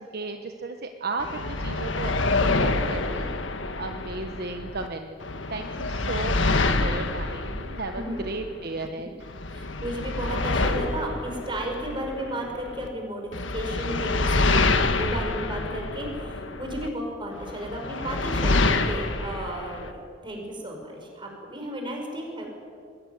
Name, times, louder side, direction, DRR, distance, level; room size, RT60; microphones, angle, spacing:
voice 1, 0.0-2.1 2.4-3.3 3.8-5.2 5.5-9.1, right 3 dB, 55° right, 5 dB, 1.2 m, -34 dB
sound 1, 1.2-4.9 5.2-8.9 9.2-12.9 13.3-16.9 17.4-19.9, left 3 dB, 85° left, 1.6 m, -27 dB
voice 2, 7.9-8.4 9.0-9.1 9.5-22.5, right 1 dB, 25° right, 1 dB, 5.5 m, -34 dB
22.0 x 17.0 x 9.5 m, 2.2 s
head